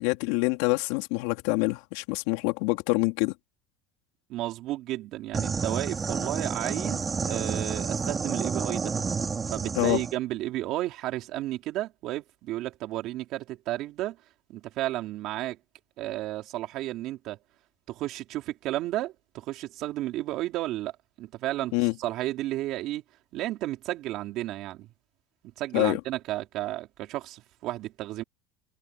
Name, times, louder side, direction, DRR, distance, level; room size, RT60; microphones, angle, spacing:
voice 1, 0.0-3.3 9.7-10.0 21.7-21.9 25.7-26.0, left 24 dB, 70° left, 3.4 m, -26 dB
voice 2, 4.3-8.9 9.5-14.2 14.5-15.6 16.0-17.4 17.9-20.9 21.2-23.0 23.3-24.9 25.6-28.2, right 15 dB, 50° right, 3.9 m, -33 dB
sound 1, 5.3-10.1, right 5 dB, 20° right, 3.3 m, -30 dB
supercardioid pair, 145°, 0 cm